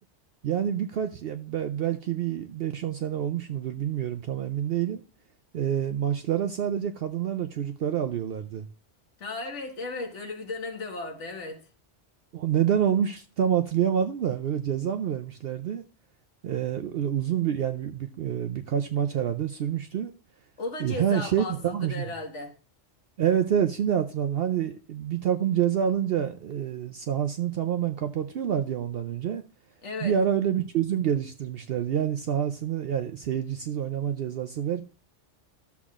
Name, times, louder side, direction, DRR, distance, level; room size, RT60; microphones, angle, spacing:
voice 1, 0.4-5.0 5.5-8.7 12.3-15.8 16.4-20.1 20.8-22.1 23.2-29.4 30.0-34.8, right 9 dB, 60° right, 0.7 m, -27 dB
voice 2, 9.2-11.6 20.6-22.5 29.8-30.1, left 3 dB, 75° left, 1.8 m, -35 dB
13.0 x 7.1 x 2.4 m
omnidirectional pair, 1.2 m